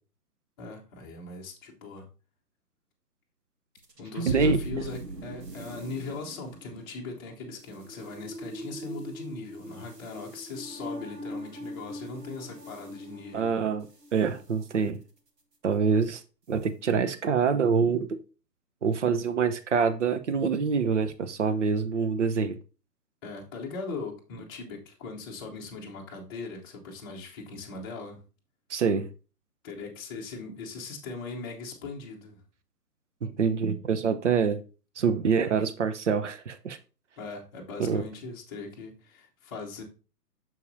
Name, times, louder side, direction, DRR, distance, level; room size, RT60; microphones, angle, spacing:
voice 1, 0.6-2.1 4.0-13.6 23.2-28.2 29.6-32.4 37.2-39.8, left 3 dB, 15° left, 0.9 m, -40 dB
sound 1, 3.8-14.3, right 1 dB, 80° right, 1.5 m, -39 dB
voice 2, 4.3-4.6 13.3-13.9 14.1-15.0 15.6-16.2 16.5-18.2 18.8-22.6 28.7-29.1 33.2-34.6 35.0-36.8 37.8-38.0, right 5 dB, 45° right, 0.8 m, -25 dB
6.7 x 6.5 x 2.6 m
figure-of-eight pair, 135°, 48 cm